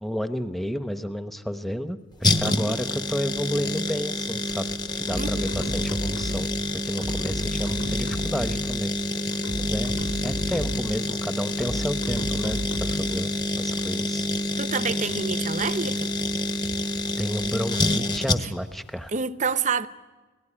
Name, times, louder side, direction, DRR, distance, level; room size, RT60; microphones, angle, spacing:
voice 1, 0.0-4.7 5.0-6.5 6.8-8.9 9.6-9.9 10.2-13.3 13.5-14.3 17.2-19.1, equal, ahead, 1.0 m, -31 dB
sound 1, 2.2-18.7 19.0-19.1, left 1 dB, 20° left, 1.1 m, -27 dB
voice 2, 2.4-2.7 5.2-5.5 14.6-16.1 18.4-18.5 19.1-19.9, right 5 dB, 35° right, 0.7 m, -28 dB
sound 2, 5.1-6.6 7.0-8.8 9.3-11.0 11.6-13.1, equal, 75° left, 6.6 m, -32 dB
30.0 x 19.0 x 10.0 m
head